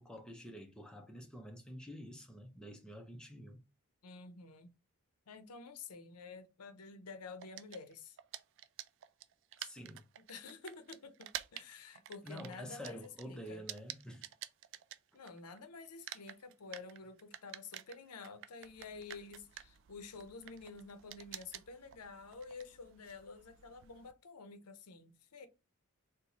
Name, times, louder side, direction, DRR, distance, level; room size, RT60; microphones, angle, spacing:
voice 1, 0.0-3.6 9.6-10.0 12.2-14.3, equal, 5° left, 0.6 m, -48 dB
voice 2, 4.0-4.7 5.3-8.2 10.3-13.6 15.1-25.5, left 4 dB, 90° left, 0.6 m, -50 dB
sound 1, 7.4-15.6 15.9-24.1, right 12 dB, 55° right, 0.3 m, -49 dB
4.0 x 2.2 x 2.9 m
head